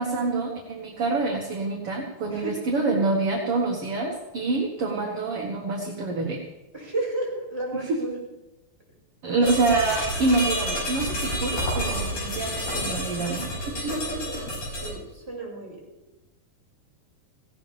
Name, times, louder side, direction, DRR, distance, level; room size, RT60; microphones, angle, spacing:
voice 1, 0.0-6.4 7.7-8.1 9.2-13.5, right 3 dB, 50° right, -1 dB, 2.4 m, -26 dB
voice 2, 2.3-2.7 6.7-8.2 13.8-14.5 14.7-15.8, right 2 dB, 5° right, -5 dB, 5.8 m, -33 dB
sound 1, 9.4-14.9, equal, 60° left, 6.3 m, -29 dB
18.5 x 17.5 x 3.5 m, 1.0 s
omnidirectional pair, 3.9 m